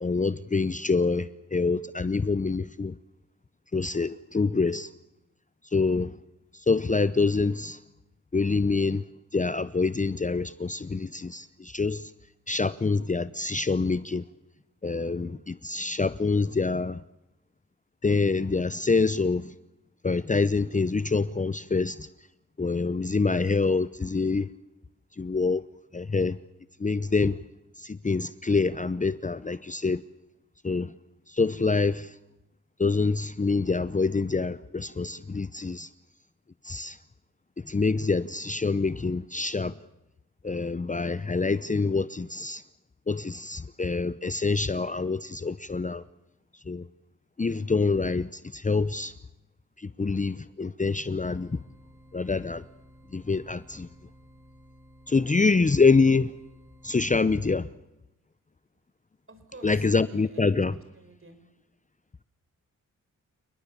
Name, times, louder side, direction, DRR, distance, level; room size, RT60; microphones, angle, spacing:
voice 1, 0.0-3.0 3.7-4.9 5.7-6.1 6.5-7.8 8.3-9.0 9.3-12.1 12.5-14.2 14.8-17.0 18.0-19.5 20.0-22.1 22.6-24.5 25.2-25.6 25.9-26.4 26.8-27.4 27.8-30.0 30.6-30.9 31.3-32.1 32.8-35.9 36.6-37.0 37.6-39.7 40.4-42.6 43.1-46.0 46.7-46.9 47.4-49.1 49.8-51.6 52.1-52.6 53.1-53.9 55.1-56.3 56.8-57.7 59.6-60.8, left 4 dB, 25° left, 0.8 m, -26 dB
sound 1, 51.2-57.1, equal, 10° right, 2.9 m, -54 dB
voice 2, 59.3-59.8 60.1-60.6 60.9-61.4, right 2 dB, 40° right, 5.1 m, -49 dB
29.5 x 20.0 x 7.1 m
supercardioid pair, 40°, 33 cm